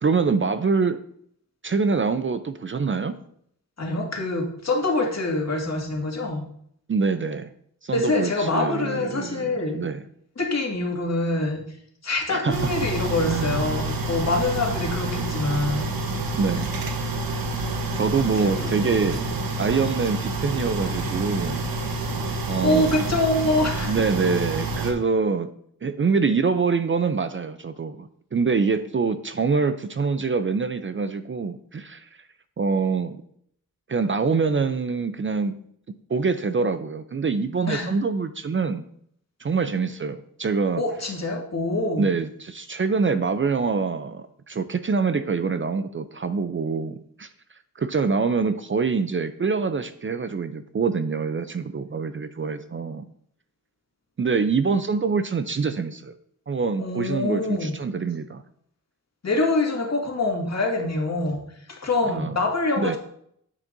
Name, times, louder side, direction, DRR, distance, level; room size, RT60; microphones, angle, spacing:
voice 1, 0.0-1.0 1.6-3.2 6.9-7.5 7.8-10.0 12.3-12.7 13.3-13.8 16.3-16.7 17.9-19.2 19.6-21.6 22.5-22.9 23.8-25.5 25.8-32.1 32.6-33.2 33.9-35.5 36.1-38.8 39.4-40.8 42.0-47.3 47.8-53.0 54.2-56.1 56.5-58.4 62.0-62.3 62.8-63.0, right 5 dB, 35° right, 11 dB, 0.5 m, -25 dB
voice 2, 3.8-6.4 7.9-9.8 10.4-11.6 12.0-15.9 18.4-18.8 22.6-24.0 37.7-37.9 40.8-42.1 56.8-57.7 59.2-61.4 61.7-63.0, left 2 dB, 50° left, 0 dB, 2.1 m, -25 dB
sound 1, 12.5-24.9, right 2 dB, 85° right, 1.1 m, -28 dB
9.8 x 7.2 x 2.7 m, 0.67 s
cardioid pair, 55°, 34 cm